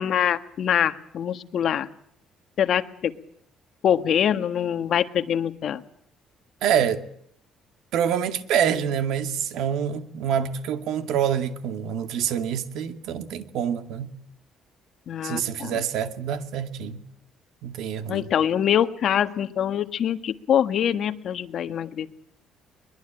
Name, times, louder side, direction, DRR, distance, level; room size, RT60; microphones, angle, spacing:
voice 1, 0.0-1.9 2.6-3.1 3.8-5.8 15.1-15.8 18.1-22.1, left 9 dB, 55° left, 1.6 m, -24 dB
voice 2, 6.6-7.0 7.9-14.1 15.2-17.0 17.6-18.3, right 8 dB, 75° right, 2.2 m, -26 dB
23.0 x 21.5 x 9.0 m
cardioid pair, 135°, 0 cm